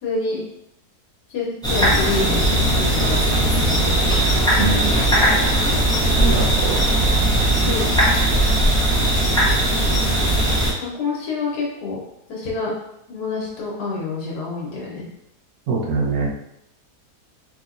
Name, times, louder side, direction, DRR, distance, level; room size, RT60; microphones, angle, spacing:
voice 1, 0.0-0.4 1.3-2.4 2.7-3.9 7.6-7.8 9.7-10.2 10.8-12.0 12.3-12.7 13.1-15.1, left 4 dB, 80° left, -4 dB, 1.5 m, -27 dB
sound 1, 1.6-10.7, right 1 dB, 5° left, 0.6 m, -18 dB
voice 2, 4.6-5.1 6.1-6.8 15.7-16.3, right 4 dB, 70° right, -3 dB, 1.2 m, -23 dB
3.7 x 2.8 x 2.5 m, 0.78 s
omnidirectional pair, 1.7 m